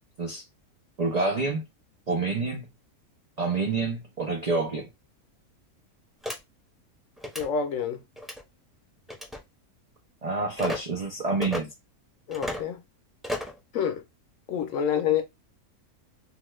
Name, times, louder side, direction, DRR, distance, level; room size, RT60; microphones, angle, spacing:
voice 1, 1.0-1.6 2.1-2.7 3.4-4.9 10.2-11.7, right 3 dB, 70° right, 0.3 m, -27 dB
sound 1, 6.2-6.4 7.2-7.5 8.2-8.4 9.1-9.4 10.6-10.8 11.4-11.6 12.3-12.6 13.2-13.6, left 1 dB, ahead, 0.5 m, -32 dB
voice 2, 7.4-8.0 12.3-12.8 13.7-14.0 14.5-15.2, left 8 dB, 70° left, 0.9 m, -27 dB
2.8 x 2.2 x 3.0 m
omnidirectional pair, 1.6 m